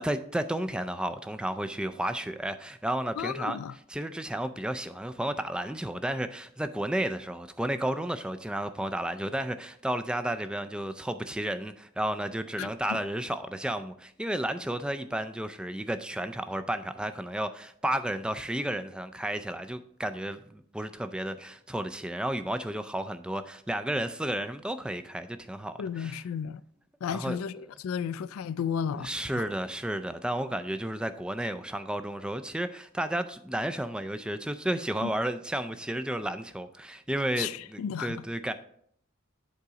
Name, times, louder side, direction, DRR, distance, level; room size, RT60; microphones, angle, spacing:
voice 1, 0.0-3.6 3.9-26.2 27.1-27.4 29.0-38.5, right 1 dB, 5° right, 0.3 m, -32 dB
voice 2, 3.2-3.7 12.6-13.0 25.8-26.6 27.0-29.5 35.0-35.1 37.4-38.2, left 7 dB, 80° left, 0.3 m, -34 dB
8.3 x 3.9 x 4.8 m
head